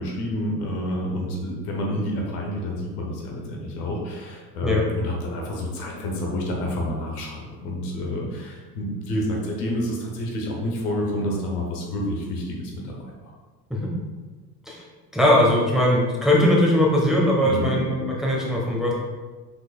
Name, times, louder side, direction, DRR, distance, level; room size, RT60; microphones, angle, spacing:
voice 1, 0.0-13.3 17.4-17.8, left 1 dB, 70° left, -1 dB, 1.1 m, -29 dB
voice 2, 15.1-18.9, left 1 dB, ahead, -3 dB, 1.0 m, -20 dB
5.5 x 3.8 x 2.3 m, 1.4 s
figure-of-eight pair, 65°, 49 cm